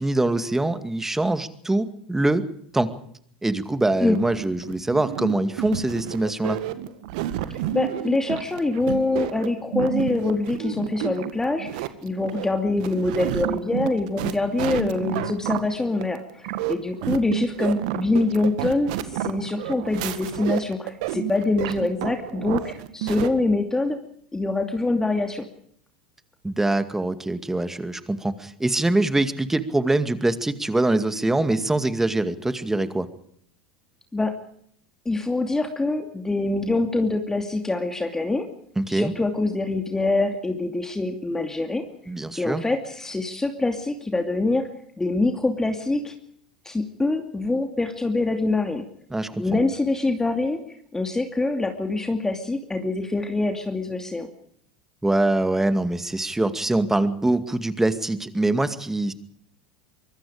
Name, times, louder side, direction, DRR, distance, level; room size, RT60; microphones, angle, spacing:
voice 1, 0.0-2.4 2.7-2.9 3.4-6.6 26.4-33.1 38.8-39.1 42.1-42.6 49.1-49.4 55.0-59.1, right 2 dB, 10° right, 11 dB, 2.2 m, -23 dB
sound 1, 4.1-23.3, right 13 dB, 60° right, 1.8 m, -30 dB
voice 2, 7.7-24.0 24.3-25.5 34.1-34.3 35.0-38.5 38.9-41.8 42.4-44.7 45.0-46.1 46.6-48.8 49.4-54.3, left 2 dB, 10° left, 5 dB, 2.7 m, -25 dB
24.5 x 23.0 x 5.0 m, 0.66 s
figure-of-eight pair, 80°, 4 cm